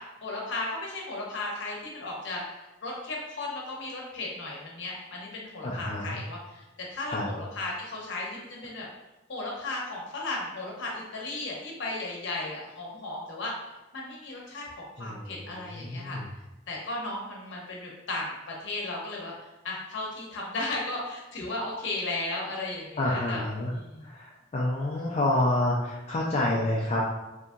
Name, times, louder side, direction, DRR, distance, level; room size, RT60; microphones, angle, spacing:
voice 1, 0.0-6.6 6.9-8.8 9.3-13.5 13.9-14.6 15.0-16.2 16.7-18.3 18.6-19.3 19.6-24.1, left 2 dB, 65° left, -3 dB, 0.8 m, -35 dB
voice 2, 5.6-6.2 7.1-7.3 15.0-16.3 23.0-23.7 24.0-27.0, left 1 dB, 35° left, -4 dB, 0.3 m, -28 dB
2.8 x 2.6 x 2.3 m, 1.0 s
head